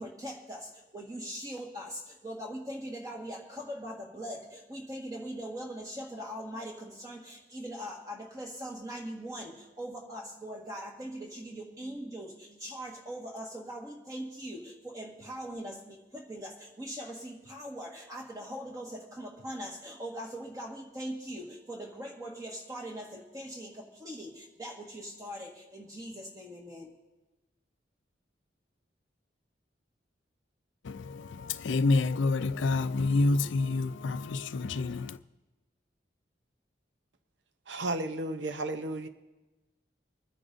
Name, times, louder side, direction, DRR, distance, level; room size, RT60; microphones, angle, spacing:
voice 1, 0.0-26.9, equal, 20° right, 1.6 m, -41 dB
voice 2, 30.8-35.2, left 3 dB, 90° left, 0.4 m, -28 dB
voice 3, 37.7-39.1, right 2 dB, 80° right, 0.7 m, -33 dB
25.0 x 9.9 x 2.7 m
head